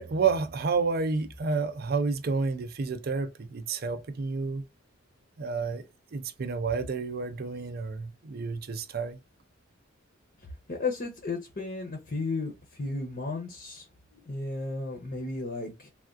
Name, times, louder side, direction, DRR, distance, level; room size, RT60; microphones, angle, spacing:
voice 1, 0.0-4.6 5.4-5.8 6.1-9.2, right 4 dB, 50° right, 0.5 m, -30 dB
voice 2, 10.7-13.9 14.1-15.9, left 3 dB, 45° left, 0.7 m, -34 dB
3.4 x 2.3 x 2.5 m
head